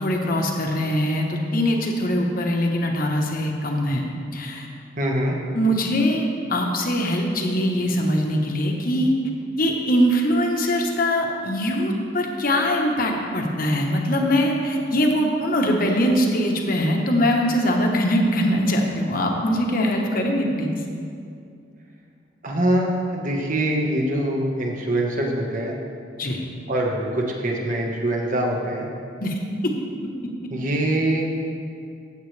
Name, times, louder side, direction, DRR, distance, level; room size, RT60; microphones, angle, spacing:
voice 1, 0.0-4.0 4.3-4.7 5.5-9.2 9.6-20.7 26.2-26.4 29.2-29.3 29.6-29.7, equal, 50° left, 1 dB, 1.2 m, -22 dB
voice 2, 5.0-5.4 22.4-25.7 26.7-28.9 30.5-31.3, right 1 dB, 45° right, -1 dB, 1.4 m, -23 dB
15.5 x 7.8 x 3.4 m, 2.4 s
head